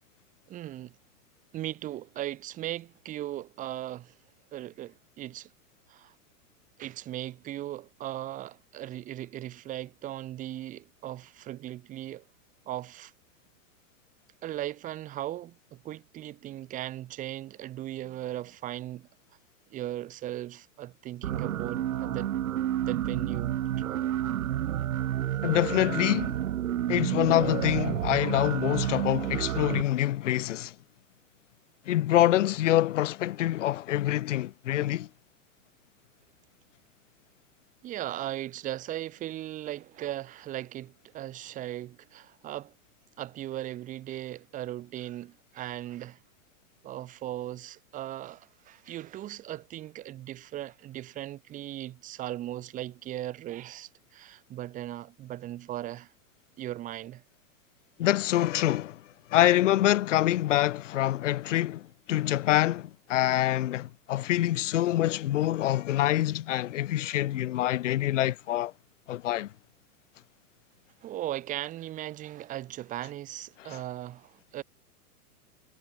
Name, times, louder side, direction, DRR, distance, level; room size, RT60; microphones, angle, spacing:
voice 1, 0.5-0.9 1.5-4.2 4.5-5.5 5.9-6.1 6.8-12.2 12.7-13.1 14.4-19.1 19.7-22.4 22.8-24.1 37.8-42.7 43.2-46.2 46.8-56.1 56.6-57.2 67.2-67.3 71.0-74.6, right 13 dB, 15° right, 4.9 m, -38 dB
sound 1, 21.2-29.8, right 12 dB, 60° right, 2.9 m, -30 dB
voice 2, 25.4-26.4 26.9-30.7 31.9-35.1 58.0-59.0 59.3-68.7 69.1-69.5 73.7-73.8, left 14 dB, 55° left, 0.5 m, -26 dB
supercardioid pair, 180°, 47 cm